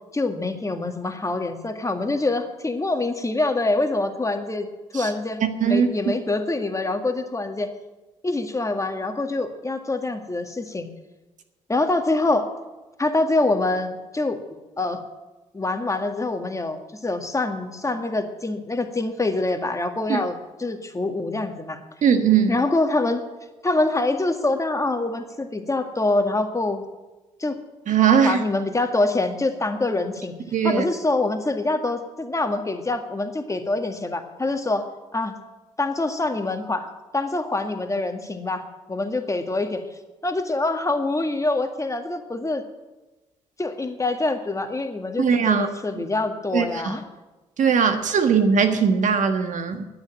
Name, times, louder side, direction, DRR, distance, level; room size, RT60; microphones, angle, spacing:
voice 1, 0.1-4.7 4.9-7.7 8.2-10.9 11.7-12.5 13.0-14.4 14.8-15.0 15.5-21.8 22.5-23.2 23.6-26.8 27.4-27.6 28.2-30.3 30.6-34.9 35.1-35.4 35.8-39.8 40.2-42.6 43.6-47.0, left 2 dB, 20° left, 6 dB, 1.9 m, -25 dB
voice 2, 22.0-22.5 27.9-28.4 30.5-30.8 45.2-45.7 46.5-46.9 47.6-49.8, right 6 dB, 55° right, 7 dB, 1.5 m, -19 dB
10.5 x 9.8 x 8.9 m, 1.1 s
hypercardioid pair, 45°, 15 cm